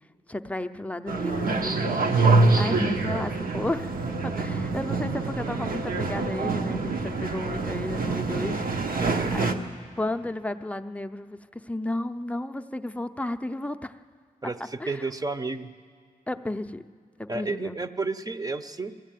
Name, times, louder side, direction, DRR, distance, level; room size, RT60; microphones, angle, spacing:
voice 1, 0.3-2.1 2.6-4.0 4.2-8.6 9.3-9.5 10.0-14.0 14.8-15.1 16.3-16.8 17.2-17.9, left 1 dB, 10° left, 8 dB, 0.6 m, -33 dB
sound 1, 1.1-9.5, right 3 dB, 75° right, 1.2 m, -25 dB
voice 2, 9.0-9.3 14.4-15.7 17.3-19.0, right 3 dB, 25° right, 10 dB, 0.7 m, -31 dB
21.0 x 14.0 x 9.1 m, 2.1 s
wide cardioid pair, 95°, 15 cm